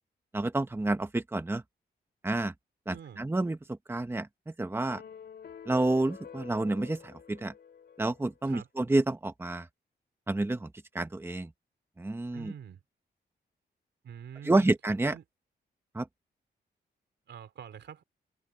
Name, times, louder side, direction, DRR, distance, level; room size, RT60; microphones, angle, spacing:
voice 1, 0.3-1.6 2.2-2.5 2.9-3.6 3.9-4.3 4.6-5.0 5.7-7.5 8.0-9.7 10.3-10.7 10.9-11.5 12.0-12.5 14.4-15.1 15.9-16.1, right 2 dB, 15° right, 1.2 m, -29 dB
voice 2, 2.9-3.2 8.4-8.7 12.3-12.8 14.0-14.7 15.1-15.2 17.3-18.0, right 8 dB, 80° right, 3.2 m, -45 dB
sound 1, 4.9-8.4, left 7 dB, 65° left, 3.1 m, -48 dB
wide cardioid pair, 125°, 18 cm